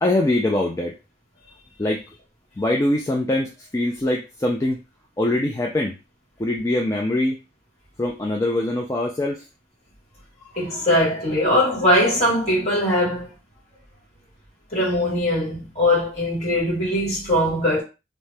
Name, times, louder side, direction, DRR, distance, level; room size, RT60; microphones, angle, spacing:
voice 1, 0.0-1.0 1.8-2.0 2.6-4.8 5.2-5.9 6.4-7.4 8.0-9.4, left 1 dB, 15° left, 0.3 m, -23 dB
voice 2, 10.5-13.3 14.7-17.8, left 1 dB, 35° left, 1.5 m, -21 dB
2.7 x 2.0 x 3.3 m
head